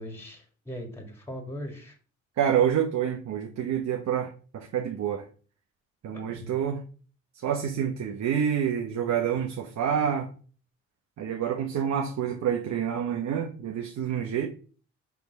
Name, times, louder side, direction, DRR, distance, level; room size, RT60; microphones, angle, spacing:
voice 1, 0.0-2.0 6.1-6.5, equal, 10° left, 4 dB, 2.1 m, -40 dB
voice 2, 2.4-5.3 6.0-6.8 7.4-10.3 11.2-14.5, right 8 dB, 65° right, 3 dB, 1.0 m, -27 dB
6.0 x 3.6 x 5.9 m, 0.39 s
cardioid pair, 90°, 30 cm